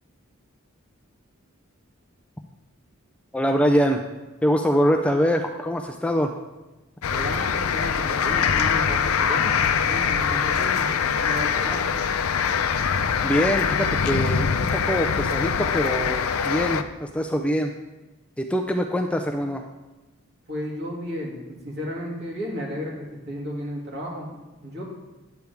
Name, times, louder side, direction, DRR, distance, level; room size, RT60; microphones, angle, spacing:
voice 1, 3.3-4.0 4.4-6.3 13.2-17.7 18.4-19.7, equal, 5° left, 3 dB, 0.4 m, -24 dB
sound 1, 7.0-16.8, left 7 dB, 85° left, 0.5 m, -23 dB
voice 2, 7.1-10.9 11.2-11.9 20.5-24.3 24.6-24.8, equal, 50° right, -3 dB, 2.4 m, -33 dB
9.2 x 8.3 x 3.4 m, 1.1 s
head